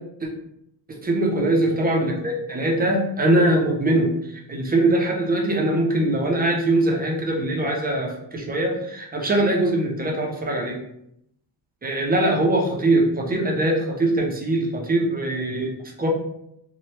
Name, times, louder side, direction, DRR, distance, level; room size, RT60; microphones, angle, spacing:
voice 1, 1.0-10.8 11.8-16.1, right 1 dB, 20° right, -1 dB, 0.4 m, -22 dB
2.8 x 2.0 x 3.0 m, 0.77 s
wide cardioid pair, 145°, 45 cm